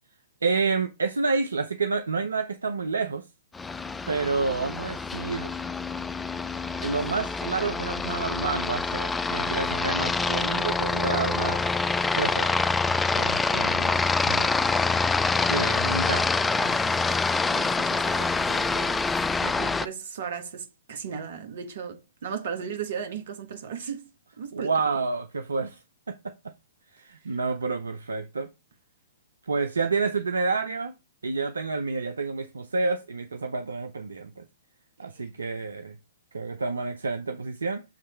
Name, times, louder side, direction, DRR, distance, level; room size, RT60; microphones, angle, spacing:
voice 1, 0.4-3.3 4.1-5.5 6.8-11.7 12.1-12.6 13.1-14.6 15.4-16.8 24.5-25.8 26.1-26.3 26.9-28.5 29.4-30.9 31.2-34.4 35.0-36.0 36.3-37.8, right 4 dB, 75° right, 0.6 m, -29 dB
Aircraft, 3.5-19.9, left 4 dB, 10° left, 0.3 m, -26 dB
voice 2, 17.5-19.0 19.4-24.1 24.4-24.7 27.2-27.4 35.0-35.2, right 7 dB, 55° right, 1.4 m, -36 dB
7.3 x 3.2 x 4.3 m
figure-of-eight pair, 115°, 0 cm